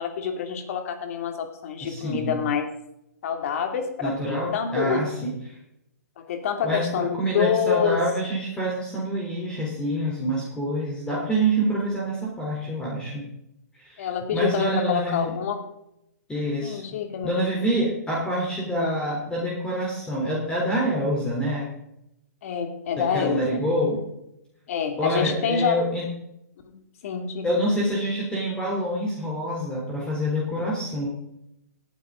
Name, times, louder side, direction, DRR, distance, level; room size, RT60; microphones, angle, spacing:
voice 1, 0.0-2.7 3.2-5.1 6.2-8.0 14.0-15.6 16.6-17.7 18.7-19.0 22.4-23.7 24.7-25.8 26.7-27.8, left 7 dB, 55° left, 5 dB, 2.6 m, -27 dB
voice 2, 1.8-2.4 4.0-5.3 6.6-13.2 13.8-15.3 16.3-16.8 17.2-21.7 23.0-24.0 25.0-26.1 27.4-31.1, right 1 dB, 10° left, -4 dB, 3.5 m, -26 dB
17.5 x 9.8 x 3.8 m, 0.82 s
hypercardioid pair, 130°, 9 cm